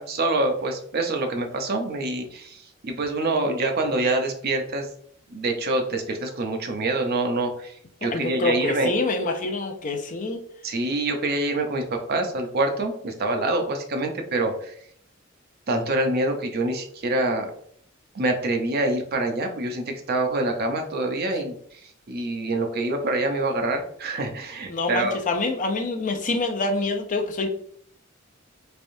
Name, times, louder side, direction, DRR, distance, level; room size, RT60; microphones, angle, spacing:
voice 1, 0.0-4.9 5.3-9.3 10.6-14.8 15.7-17.5 18.1-21.8 22.1-25.2, right 2 dB, 50° right, 4 dB, 0.6 m, -26 dB
voice 2, 8.0-10.4 24.7-27.5, left 2 dB, 40° left, 5 dB, 0.5 m, -26 dB
3.4 x 3.3 x 2.6 m, 0.63 s
head